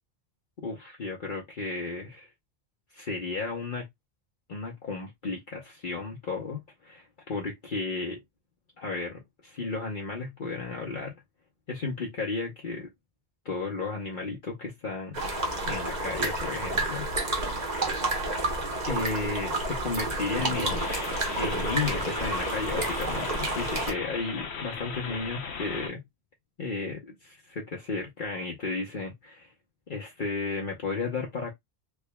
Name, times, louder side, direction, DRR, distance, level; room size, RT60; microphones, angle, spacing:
voice 1, 0.6-2.3 2.9-3.8 4.5-8.2 8.8-11.1 11.7-12.9 13.4-15.2 15.7-17.1 18.9-20.9 21.4-26.0 26.6-29.5 29.9-31.5, left 3 dB, 50° left, 1.1 m, -34 dB
sound 1, 15.1-23.9, right 2 dB, 40° right, 1.2 m, -30 dB
sound 2, 20.3-25.9, left 5 dB, 80° left, 1.0 m, -37 dB
3.6 x 3.5 x 2.2 m
omnidirectional pair, 1.1 m